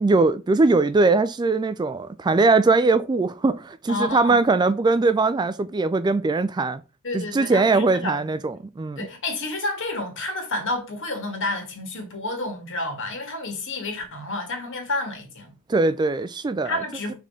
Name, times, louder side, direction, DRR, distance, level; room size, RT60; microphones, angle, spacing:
voice 1, 0.0-6.8 7.1-9.1 15.7-16.8, right 3 dB, 20° right, 0.3 m, -21 dB
voice 2, 3.9-4.5 7.0-8.2 9.0-15.5 16.6-17.1, left 2 dB, 60° left, 2.0 m, -30 dB
5.6 x 3.7 x 4.9 m
head